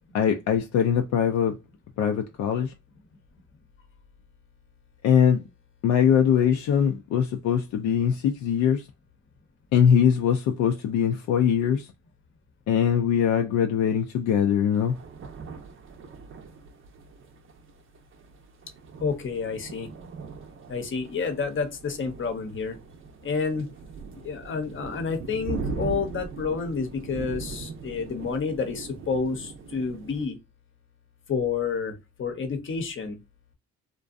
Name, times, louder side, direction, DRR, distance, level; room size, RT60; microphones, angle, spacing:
voice 1, 0.1-1.6 2.0-2.7 5.0-5.4 5.8-8.8 9.7-11.9 12.7-14.9, left 8 dB, 70° left, 0.5 m, -22 dB
sound 1, 14.7-30.3, right 4 dB, 45° right, 0.6 m, -40 dB
voice 2, 19.0-19.9 20.7-22.8 23.2-23.7 24.1-30.4 31.3-33.2, left 5 dB, 40° left, 0.8 m, -29 dB
2.6 x 2.2 x 2.4 m
cardioid pair, 90°, 30 cm